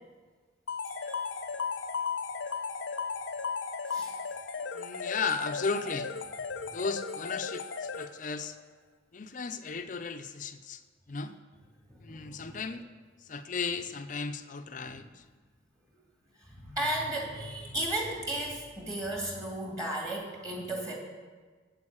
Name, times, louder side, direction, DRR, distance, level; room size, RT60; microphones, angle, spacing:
sound 1, 0.7-8.4, left 5 dB, 80° left, 0.7 m, -36 dB
voice 1, 0.9-1.3 3.9-4.1 11.9-12.6 14.8-15.0 16.5-20.9, right 1 dB, 20° right, -1 dB, 2.3 m, -35 dB
voice 2, 4.7-6.1 6.7-8.6 9.1-10.8 11.1-11.3 12.0-12.8 13.3-15.2, left 4 dB, 40° left, 9 dB, 0.5 m, -35 dB
8.6 x 8.1 x 8.7 m, 1.5 s
head